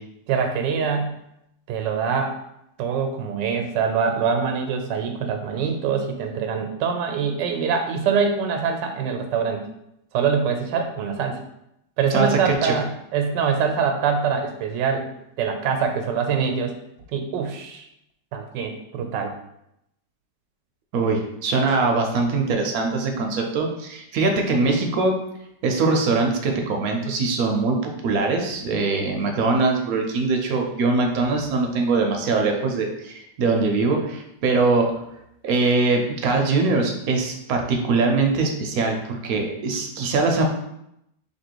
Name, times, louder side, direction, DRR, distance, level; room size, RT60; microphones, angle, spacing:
voice 1, 0.3-1.2 1.7-2.4 2.8-9.6 10.1-11.4 12.0-15.1 15.4-16.7 17.1-17.9 18.3-19.3, right 6 dB, 80° right, 5 dB, 1.2 m, -24 dB
voice 2, 12.1-12.7 20.9-25.1 25.6-35.0 35.4-40.5, right 3 dB, 65° right, 2 dB, 0.9 m, -22 dB
3.0 x 2.9 x 4.4 m, 0.80 s
omnidirectional pair, 1.9 m